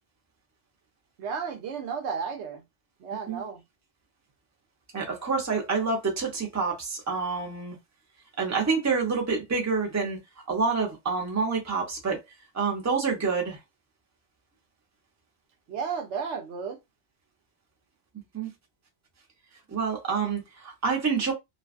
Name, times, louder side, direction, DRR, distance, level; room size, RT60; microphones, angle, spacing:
voice 1, 1.2-2.6 3.0-3.6 15.7-16.8, right 6 dB, 80° right, 0.9 m, -33 dB
voice 2, 4.9-7.8 8.4-10.2 10.5-12.2 12.5-13.6 18.3-18.5 19.7-21.3, right 4 dB, 20° right, 0.6 m, -27 dB
2.5 x 2.3 x 2.3 m
omnidirectional pair, 1.2 m